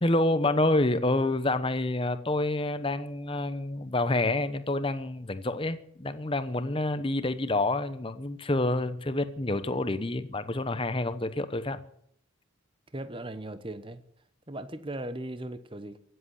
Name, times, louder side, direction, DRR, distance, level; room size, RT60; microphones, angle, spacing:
voice 1, 0.0-11.8, left 2 dB, 25° left, 11 dB, 0.9 m, -28 dB
voice 2, 12.9-14.0 14.5-16.0, right 1 dB, 25° right, 11 dB, 1.0 m, -38 dB
16.0 x 7.9 x 9.9 m, 0.69 s
head